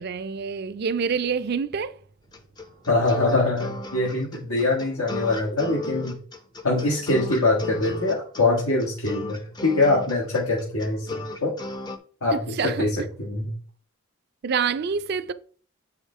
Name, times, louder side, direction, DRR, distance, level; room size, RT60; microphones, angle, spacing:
voice 1, 0.0-2.0 12.3-13.1 14.4-15.3, right 6 dB, 45° right, 0.4 m, -27 dB
sound 1, 2.3-12.0, left 2 dB, 20° left, 0.5 m, -35 dB
voice 2, 2.9-6.2 6.6-11.5 12.2-12.4 12.6-12.9 13.2-13.5, left 2 dB, 90° left, 1.4 m, -23 dB
7.9 x 4.9 x 3.2 m
head